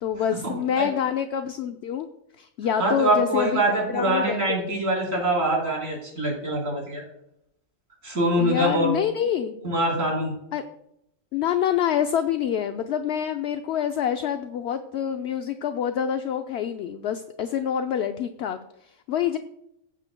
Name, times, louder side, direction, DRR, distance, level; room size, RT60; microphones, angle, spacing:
voice 1, 0.0-2.1 2.4-3.6 3.9-4.8 8.3-9.6 10.5-10.6 11.3-19.4, left 9 dB, 65° left, 7 dB, 0.8 m, -27 dB
voice 2, 2.8-7.0 8.0-8.9 9.6-10.3, right 1 dB, 75° right, -3 dB, 4.2 m, -24 dB
15.5 x 8.3 x 2.2 m, 0.77 s
omnidirectional pair, 1.4 m